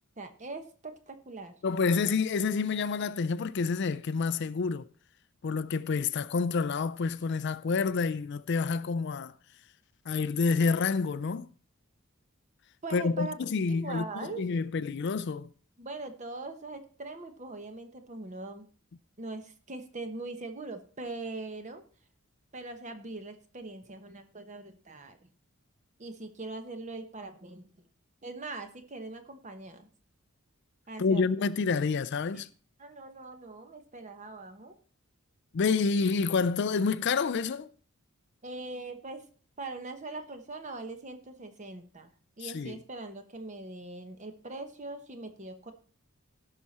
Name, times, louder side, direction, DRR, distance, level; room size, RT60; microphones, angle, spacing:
voice 1, 0.2-1.5 8.7-8.8 12.8-13.4 13.7-14.4 15.8-18.6 19.2-21.8 22.5-25.3 26.0-27.9 28.2-29.9 30.9-31.4 32.8-34.8 38.4-39.2 39.6-42.1 42.4-45.7, right 2 dB, 35° right, 1.1 m, -41 dB
voice 2, 1.6-4.9 5.4-9.3 10.1-11.5 12.9-14.1 14.4-15.5 31.0-32.5 35.5-37.7 42.4-42.8, left 4 dB, 55° left, 0.4 m, -28 dB
16.5 x 5.9 x 4.2 m
head